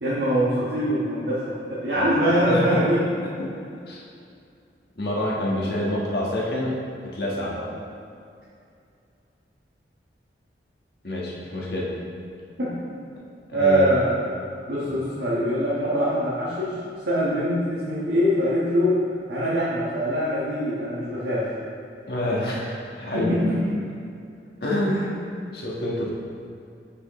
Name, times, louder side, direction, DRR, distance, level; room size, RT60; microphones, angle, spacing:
voice 1, 0.0-3.0 7.5-7.7 12.4-12.8 13.5-14.1 14.7-16.8 17.0-19.0 19.3-21.6 23.1-23.8, equal, 80° right, -9 dB, 1.4 m, -23 dB
voice 2, 2.4-2.9 3.4-3.5 3.9-4.0 5.0-6.8 7.1-7.6 11.0-11.9 13.6-13.9 22.1-23.3 24.6-25.2 25.5-26.1, left 1 dB, 60° left, -4 dB, 1.4 m, -27 dB
7.9 x 6.2 x 3.1 m, 2.4 s
head